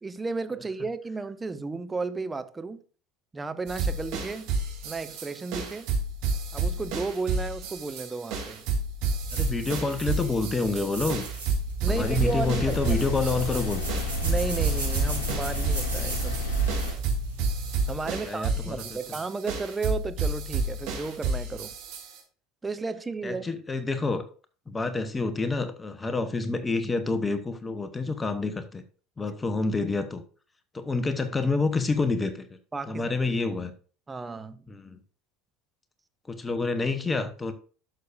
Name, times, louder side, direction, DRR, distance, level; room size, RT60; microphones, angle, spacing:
voice 1, 0.0-2.8 3.3-4.5 4.8-5.9 6.5-8.6 11.8-13.0 14.2-16.4 17.9-21.7 22.6-23.5 32.7-33.1 34.1-34.6, right 3 dB, 15° right, 0.7 m, -33 dB
sound 1, 3.7-22.2, right 3 dB, 60° right, 3.0 m, -31 dB
sound 2, 9.2-17.9, right 5 dB, 90° right, 3.0 m, -34 dB
voice 2, 9.3-11.2 11.9-14.1 18.2-19.0 23.2-24.2 24.7-28.8 29.2-30.2 30.7-32.6 32.9-33.7 34.7-35.0 36.3-37.5, left 3 dB, 20° left, 1.0 m, -28 dB
sound 3, 11.9-16.9, left 4 dB, 65° left, 3.4 m, -31 dB
11.5 x 6.5 x 2.6 m
figure-of-eight pair, 70°, 0 cm